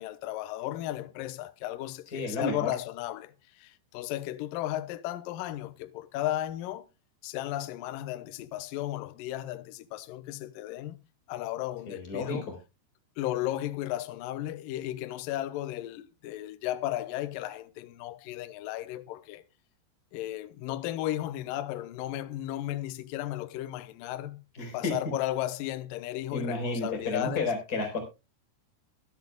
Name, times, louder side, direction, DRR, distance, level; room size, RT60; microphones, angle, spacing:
voice 1, 0.0-6.8 7.2-11.0 11.3-12.5 13.2-19.4 20.1-24.4 24.7-27.5, left 14 dB, 90° left, 1.9 m, -34 dB
voice 2, 2.1-2.7 11.9-12.5 24.5-24.9 26.3-28.0, left 2 dB, 20° left, 4.3 m, -32 dB
22.5 x 8.0 x 2.2 m
omnidirectional pair, 5.0 m